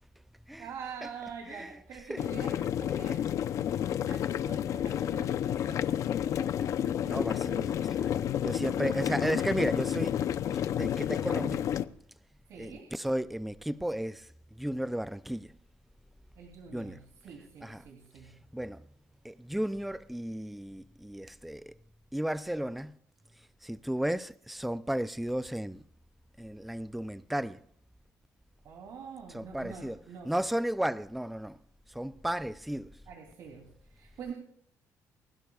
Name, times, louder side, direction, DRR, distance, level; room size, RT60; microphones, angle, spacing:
voice 1, 0.6-3.2 3.9-6.9 8.8-9.4 12.5-12.9 16.4-18.3 28.6-30.3 33.1-34.3, right 6 dB, 65° right, 3.1 m, -46 dB
sound 1, 2.2-11.8, left 10 dB, 60° left, 0.6 m, -30 dB
voice 2, 7.1-8.1 8.4-10.2 10.8-11.7 12.6-15.5 16.7-17.0 17.6-17.8 18.5-18.8 19.2-21.8 22.1-22.9 23.6-25.8 26.4-27.6 29.3-31.6 31.9-33.0, right 1 dB, ahead, 0.5 m, -34 dB
29.5 x 12.0 x 2.4 m
cardioid pair, 135°, 6 cm